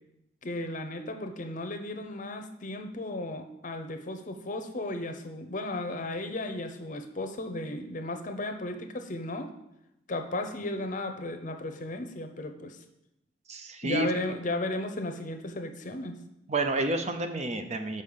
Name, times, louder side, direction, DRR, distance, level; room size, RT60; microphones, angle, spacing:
voice 1, 0.4-9.5 10.1-12.8 13.8-16.2, left 2 dB, 45° left, 6 dB, 0.7 m, -35 dB
voice 2, 13.5-14.1 16.5-18.0, right 2 dB, 35° right, 7 dB, 0.6 m, -29 dB
5.5 x 5.3 x 6.7 m, 0.88 s
head